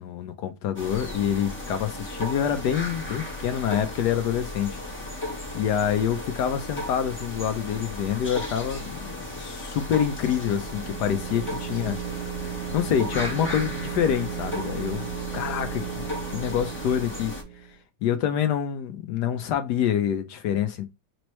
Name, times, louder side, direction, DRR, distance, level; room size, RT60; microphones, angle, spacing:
voice 1, 0.0-4.8 5.5-11.9 12.4-15.1 15.3-16.0 16.3-17.3 17.6-17.7 18.0-20.9, left 9 dB, 75° left, 1.0 m, -26 dB
sound 1, 0.8-17.4, left 1 dB, 5° left, 1.1 m, -35 dB
sound 2, 10.0-17.7, right 11 dB, 65° right, 1.2 m, -36 dB
5.1 x 3.1 x 3.0 m
omnidirectional pair, 2.2 m